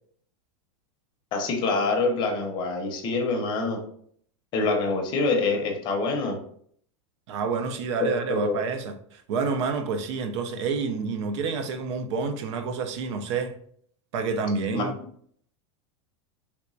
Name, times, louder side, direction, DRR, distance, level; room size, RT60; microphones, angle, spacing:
voice 1, 1.3-3.8 4.5-6.4 8.0-8.6 14.7-14.9, left 3 dB, 30° left, 0.7 m, -25 dB
voice 2, 7.3-13.5 14.1-14.9, right 5 dB, 65° right, 0.5 m, -28 dB
3.4 x 2.9 x 2.6 m
supercardioid pair, 150°, 16 cm